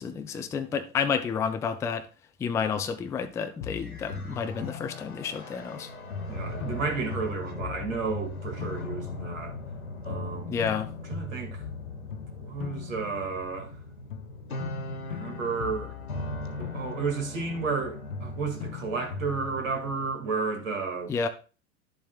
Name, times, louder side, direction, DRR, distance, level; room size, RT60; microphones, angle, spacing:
voice 1, 0.0-2.1 2.4-5.9 10.5-10.9 21.1-21.3, left 6 dB, 10° left, 0.4 m, -30 dB
sound 1, 3.6-5.8 6.1-9.8 10.1-13.8 14.1-17.8 18.1-19.7, left 5 dB, 70° left, 0.8 m, -40 dB
sound 2, 3.7-20.1, left 2 dB, 85° left, 1.6 m, -40 dB
voice 2, 6.3-9.6 10.0-10.6 11.1-11.6 12.4-13.8 15.1-15.9 16.6-21.1, right 4 dB, 65° right, 2.1 m, -32 dB
11.0 x 7.2 x 2.3 m
figure-of-eight pair, 85°, 42 cm